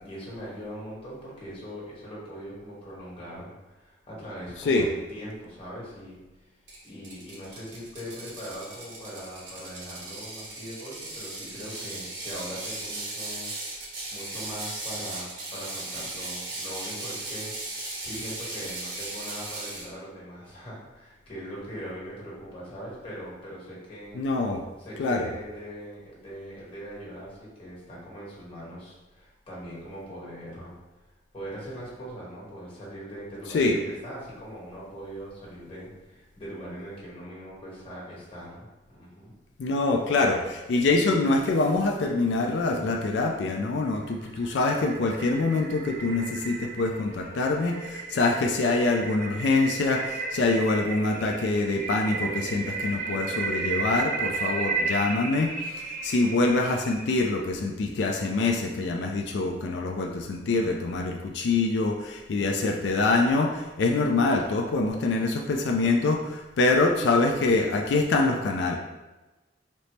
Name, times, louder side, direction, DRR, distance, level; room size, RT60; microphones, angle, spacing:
voice 1, 0.0-6.2 6.8-24.2 24.8-30.7 31.3-39.3, equal, 30° left, -7 dB, 1.2 m, -41 dB
Ratchet pawl, 6.7-19.9, right 2 dB, 75° right, 0.8 m, -37 dB
voice 2, 24.2-24.6 25.0-25.3 33.5-33.8 39.6-55.5 55.8-68.8, left 3 dB, 70° left, 1 dB, 0.3 m, -25 dB
sound 1, 44.0-57.4, right 4 dB, 45° right, 0.4 m, -34 dB
4.1 x 2.0 x 3.2 m, 1.1 s
head